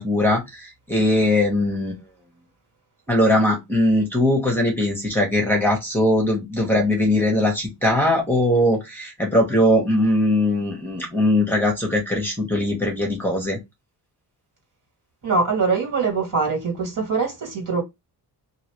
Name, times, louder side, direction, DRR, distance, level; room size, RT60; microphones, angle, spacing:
voice 1, 0.0-1.9 3.1-13.6, left 1 dB, 5° left, 1.2 m, -20 dB
voice 2, 15.2-17.8, right 4 dB, 50° right, 2.3 m, -23 dB
2.9 x 2.9 x 3.1 m
cardioid pair, 110°, 40 cm